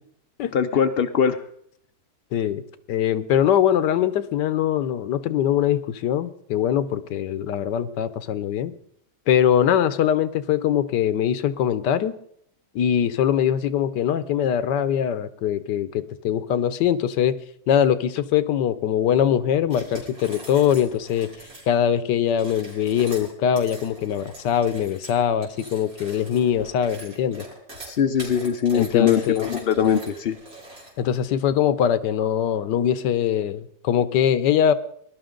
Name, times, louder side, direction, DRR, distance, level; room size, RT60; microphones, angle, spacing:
voice 1, 0.5-1.4 27.9-30.4, left 8 dB, 70° left, 10 dB, 0.5 m, -21 dB
voice 2, 2.3-2.6 2.9-8.7 9.3-12.1 12.7-17.4 17.7-21.3 21.7-27.4 28.7-29.5 31.0-34.7, left 9 dB, 90° left, 14 dB, 1.4 m, -22 dB
sound 1, 19.7-21.7 22.3-31.2, right 1 dB, 55° right, 4.3 m, -42 dB
20.5 x 12.0 x 3.8 m, 0.67 s
omnidirectional pair, 1.8 m